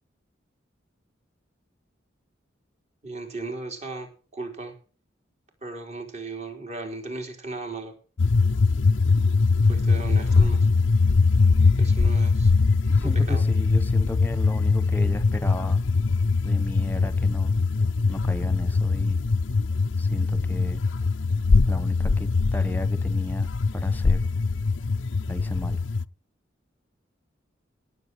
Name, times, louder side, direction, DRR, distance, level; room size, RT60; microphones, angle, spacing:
voice 1, 3.0-4.7 5.6-7.9 9.7-10.7 11.7-12.5 13.0-13.4, right 3 dB, 35° right, 4.2 m, -36 dB
sound 1, 8.2-26.0, left 4 dB, 75° left, 0.6 m, -22 dB
voice 2, 12.9-15.8 16.4-17.6 18.1-19.2 20.0-20.8 21.7-24.3 25.3-25.8, left 1 dB, 10° left, 1.3 m, -34 dB
17.5 x 7.7 x 4.8 m
head